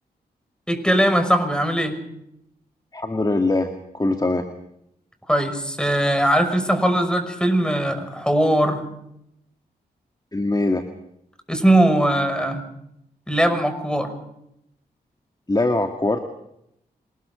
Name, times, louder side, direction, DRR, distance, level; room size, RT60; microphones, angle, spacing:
voice 1, 0.7-2.0 5.3-8.8 11.5-12.6 13.3-14.1, right 1 dB, 5° left, 8 dB, 5.8 m, -20 dB
voice 2, 2.9-4.5 10.3-10.9 15.5-16.2, left 2 dB, 25° left, 5 dB, 2.1 m, -22 dB
26.5 x 20.5 x 5.3 m, 0.79 s
cardioid pair, 45°, 17 cm